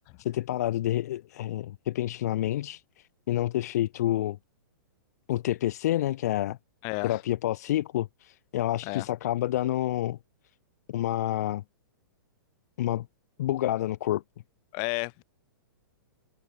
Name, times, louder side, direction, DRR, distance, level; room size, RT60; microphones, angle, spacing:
voice 1, 0.2-2.8 3.3-4.4 5.3-6.6 7.0-10.2 10.9-11.6 12.8-13.1 13.4-14.2, left 13 dB, 45° left, 4.6 m, -28 dB
voice 2, 6.8-7.2 8.8-9.1 14.7-15.2, left 40 dB or more, 30° left, 2.2 m, -32 dB
hypercardioid pair, 170°, 12 cm